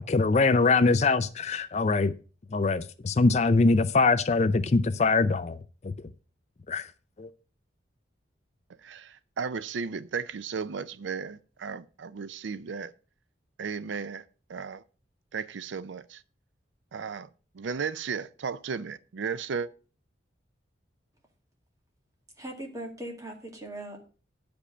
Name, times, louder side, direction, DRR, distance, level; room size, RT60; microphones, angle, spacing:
voice 1, 0.1-2.1 2.5-5.6 5.8-5.9 6.7-6.9 7.2-7.3, left 3 dB, 35° left, 0.4 m, -23 dB
voice 2, 8.8-12.9 13.6-14.2 14.5-14.8 15.3-16.2 16.9-17.3 17.5-19.7, right 5 dB, 80° right, 0.5 m, -35 dB
voice 3, 22.4-24.0, right 1 dB, 20° right, 2.1 m, -39 dB
9.8 x 5.2 x 6.5 m
head